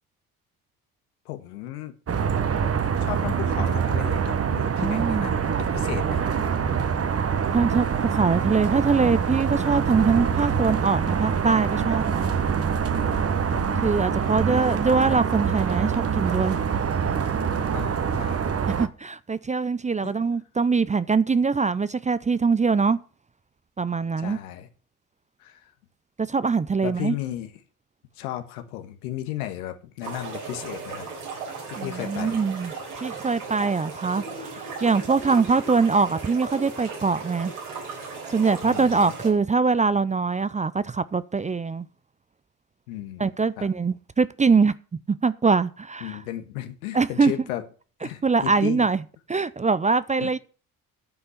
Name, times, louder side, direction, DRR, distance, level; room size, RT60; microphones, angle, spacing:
voice 1, 1.2-1.9 3.0-6.3 13.5-14.0 17.7-18.6 20.0-20.1 24.2-24.7 25.4-25.7 26.8-27.5 28.1-31.1 31.7-32.5 38.6-39.1 42.9-43.3 43.6-43.7 46.0-47.6 48.0-48.9 50.2-50.3, left 13 dB, 80° left, 1.6 m, -35 dB
sound 1, 2.1-18.9, right 7 dB, 35° right, 1.3 m, -25 dB
voice 2, 4.8-5.3 7.5-12.3 13.8-16.6 18.8-23.0 23.8-24.4 26.2-27.1 31.8-32.7 33.0-37.5 38.3-41.9 43.2-44.7 45.1-46.2 46.9-47.3 48.2-49.0 49.3-50.4, right 4 dB, 15° right, 0.6 m, -23 dB
sound 2, 30.0-39.3, right 4 dB, 85° right, 4.3 m, -36 dB
9.6 x 5.5 x 8.0 m
hypercardioid pair, 55°, 44 cm